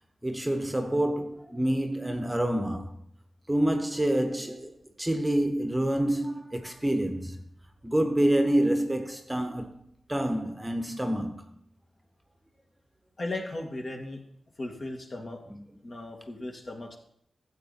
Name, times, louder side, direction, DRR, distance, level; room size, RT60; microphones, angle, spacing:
voice 1, 0.2-3.0 3.5-7.4 7.8-9.7 10.1-11.4 15.5-15.6, right 1 dB, 10° right, 1.1 m, -27 dB
voice 2, 13.2-14.2 14.6-15.4 15.8-17.0, left 2 dB, 45° left, 2.1 m, -36 dB
13.5 x 8.1 x 4.2 m
wide cardioid pair, 85°, 0 cm